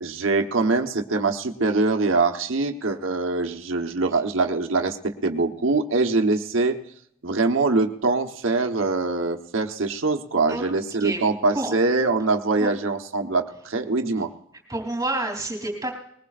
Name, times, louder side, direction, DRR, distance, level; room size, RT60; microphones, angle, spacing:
voice 1, 0.0-6.8 7.2-14.3, right 3 dB, 70° right, 5 dB, 1.2 m, -23 dB
voice 2, 14.7-15.9, right 2 dB, 15° right, 2 dB, 3.2 m, -28 dB
21.0 x 19.5 x 2.5 m, 0.72 s
head